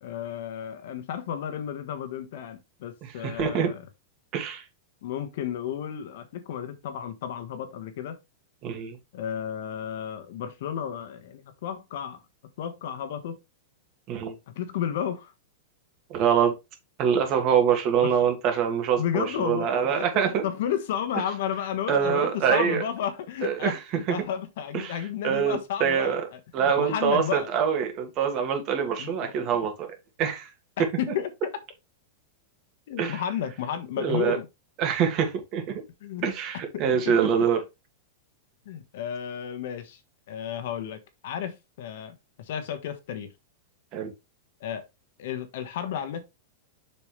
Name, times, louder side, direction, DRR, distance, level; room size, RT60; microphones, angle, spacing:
voice 1, 0.0-3.8 5.0-8.2 9.1-12.2 12.6-13.3 14.5-15.3 18.0-18.1 19.0-23.8 24.1-27.5 29.0-29.3 30.8-31.3 32.9-34.5 36.0-36.3 36.7-37.1 38.6-40.0 40.3-43.3 44.6-44.8 45.2-46.2, left 9 dB, 65° left, 1.5 m, -32 dB
voice 2, 3.0-3.7 4.3-4.6 8.6-9.0 14.1-14.3 16.1-16.6 17.0-20.4 21.9-22.8 23.4-23.8 24.2-24.3 24.7-26.3 26.5-29.9 30.2-30.5 33.0-33.2 34.0-34.4 34.8-35.8 36.2-37.6 43.9-44.1, right 7 dB, 35° right, 2.2 m, -25 dB
6.8 x 6.0 x 3.4 m
supercardioid pair, 155°, 0 cm